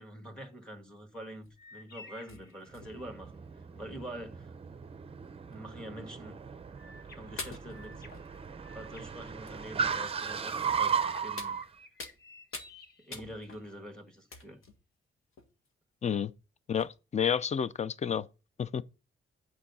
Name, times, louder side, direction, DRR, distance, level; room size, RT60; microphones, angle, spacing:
voice 1, 0.0-3.3 3.7-4.5 5.5-6.4 7.1-8.1 8.7-10.9 11.2-11.6 13.0-14.6, equal, 5° left, 1.5 m, -45 dB
sound 1, 1.4-1.7 2.3-3.3 4.0-4.1 4.4-4.5 5.5-5.6 6.6-6.7 7.4-8.8 9.5-9.6 10.7-10.9 11.4-12.2 12.5-12.8 13.1-13.7 14.3-14.8 15.3-15.7 16.4-16.5 16.8-16.9, left 3 dB, 85° left, 1.7 m, -46 dB
sound 2, 1.6-3.3 6.8-9.9 10.3-13.8, left 2 dB, 50° left, 1.3 m, -55 dB
Car, 2.7-11.7, right 6 dB, 25° right, 0.5 m, -36 dB
voice 2, 16.7-18.3 18.6-18.8, left 8 dB, 35° left, 0.4 m, -30 dB
8.8 x 4.7 x 5.4 m
wide cardioid pair, 150°, 21 cm